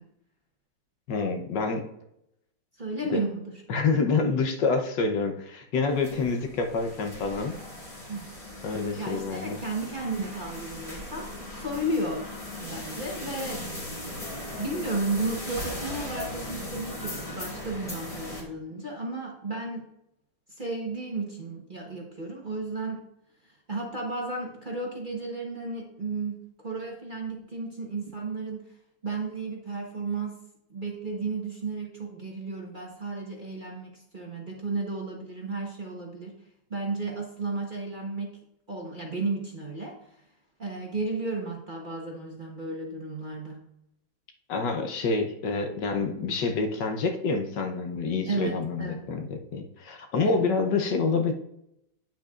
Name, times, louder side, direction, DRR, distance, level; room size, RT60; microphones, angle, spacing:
voice 1, 1.1-1.9 3.1-3.2 3.7-7.6 8.6-9.6 44.5-51.3, left 4 dB, 70° left, 5 dB, 1.4 m, -27 dB
voice 2, 2.8-3.5 8.1-8.3 9.0-12.3 12.6-13.6 14.6-19.9 20.6-23.0 23.7-28.7 29.0-30.4 30.7-36.4 36.7-38.4 38.7-39.9 40.6-43.6 48.3-49.1 50.2-50.5, right 2 dB, 30° right, -1 dB, 1.1 m, -33 dB
sound 1, 5.9-18.4, left 1 dB, 20° left, 1.8 m, -38 dB
9.0 x 8.0 x 2.5 m, 0.79 s
omnidirectional pair, 2.1 m